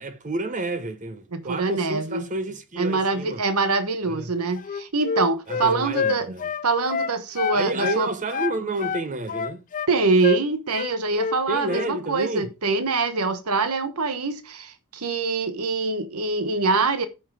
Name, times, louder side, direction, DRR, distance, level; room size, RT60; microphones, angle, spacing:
voice 1, 0.0-3.4 4.1-4.3 5.5-6.5 7.5-9.6 11.5-12.5, right 2 dB, 35° right, 0.8 m, -30 dB
voice 2, 1.3-2.2 2.8-6.3 6.6-8.1 9.9-17.1, right 3 dB, 80° right, 1.1 m, -24 dB
Wind instrument woodwind instrument, 4.6-8.0 8.3-9.9 10.2-10.4 10.7-11.4 11.6-11.9, left 6 dB, 35° left, 0.4 m, -28 dB
9.8 x 5.8 x 4.8 m
head